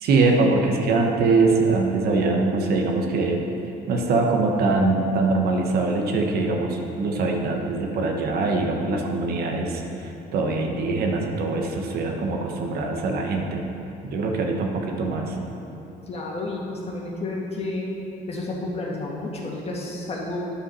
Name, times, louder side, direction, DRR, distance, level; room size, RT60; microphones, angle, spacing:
voice 1, 0.0-3.4 3.9-13.6 14.0-15.4, right 3 dB, 65° right, 2 dB, 1.1 m, -23 dB
voice 2, 16.1-17.9 18.3-20.5, left 2 dB, 35° left, -3 dB, 1.8 m, -31 dB
9.9 x 5.4 x 5.5 m, 2.9 s
cardioid pair, 110°, 17 cm